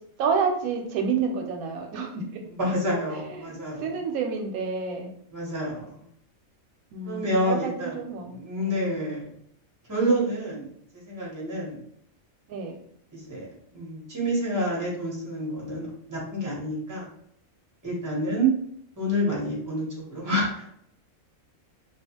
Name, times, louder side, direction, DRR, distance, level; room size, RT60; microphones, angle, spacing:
voice 1, 0.2-2.4 3.1-3.5 3.8-5.1 6.9-8.9 12.5-12.8, right 5 dB, 85° right, 3 dB, 1.0 m, -29 dB
voice 2, 2.5-4.0 5.3-6.0 7.0-8.0 8.3-9.3 9.9-10.7 11.1-11.8 13.1-17.1 17.8-18.5 19.0-20.6, right 1 dB, 15° right, -4 dB, 0.7 m, -28 dB
2.4 x 2.2 x 2.8 m, 0.67 s
omnidirectional pair, 1.4 m